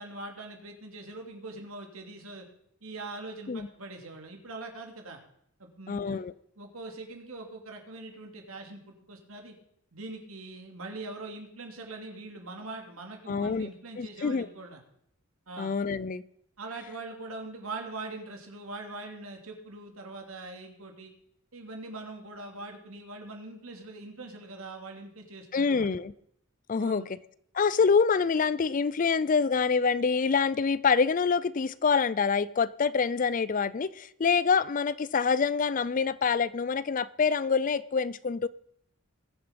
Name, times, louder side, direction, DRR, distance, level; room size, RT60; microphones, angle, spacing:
voice 1, 0.0-2.5 2.8-5.2 5.6-6.2 6.6-9.5 9.9-14.8 15.5-15.7 16.6-21.1 21.5-25.9 26.8-27.1, right 2 dB, 80° right, 2.7 m, -42 dB
voice 2, 5.9-6.3 13.3-13.7 14.0-14.5 15.6-16.2 25.5-26.1 26.7-27.2 27.5-38.5, left 5 dB, 40° left, 0.4 m, -26 dB
20.5 x 7.1 x 5.2 m
head